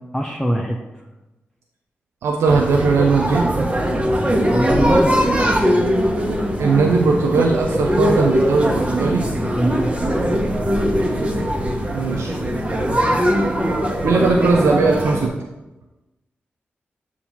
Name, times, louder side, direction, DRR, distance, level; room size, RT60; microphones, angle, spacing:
voice 1, 0.1-0.8 4.5-5.2 9.6-10.1, equal, 10° left, -1 dB, 0.7 m, -22 dB
voice 2, 2.2-3.7 6.6-9.2 11.9-12.4 14.0-15.3, right 4 dB, 90° right, 1 dB, 0.5 m, -18 dB
sound 1, 2.5-15.3, equal, 25° right, 1.2 m, -20 dB
7.1 x 2.8 x 5.8 m, 1.0 s
cardioid pair, 45°, 5 cm